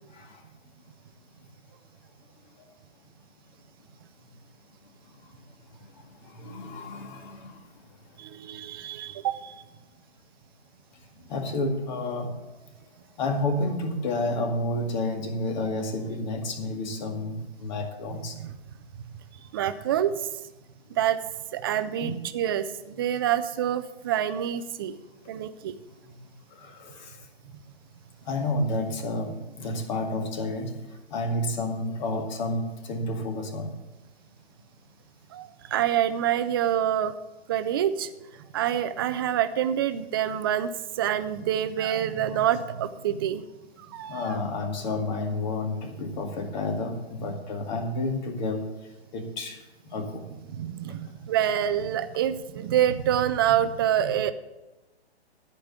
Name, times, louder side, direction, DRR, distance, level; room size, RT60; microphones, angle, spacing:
voice 1, 6.2-7.6 11.3-12.4 13.2-18.4 22.0-22.3 26.1-26.2 26.5-27.2 28.2-30.8 31.1-33.7 44.1-48.7 49.1-49.6 49.9-50.2, left 2 dB, 45° left, 4 dB, 2.0 m, -30 dB
voice 2, 8.2-9.5 18.3-18.6 19.5-20.3 21.0-21.2 21.5-25.0 25.3-25.8 35.3-37.1 37.5-38.1 38.5-43.5 43.8-44.4 50.0-50.1 50.5-54.3, right 10 dB, 20° right, 12 dB, 0.4 m, -27 dB
13.0 x 5.3 x 8.1 m, 1.1 s
figure-of-eight pair, 130°, 33 cm